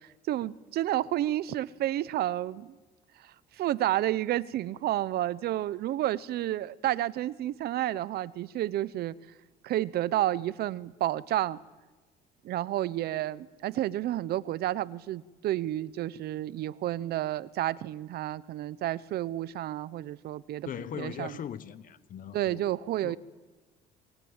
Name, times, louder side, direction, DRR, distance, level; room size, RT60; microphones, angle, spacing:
voice 1, 0.3-2.8 3.6-9.1 9.6-11.6 12.4-20.7 21.0-21.4 22.3-23.2, right 14 dB, 70° right, 0.8 m, -30 dB
voice 2, 20.7-22.6 23.0-23.2, left 9 dB, 55° left, 1.3 m, -39 dB
25.5 x 22.0 x 8.9 m
cardioid pair, 110°, 17 cm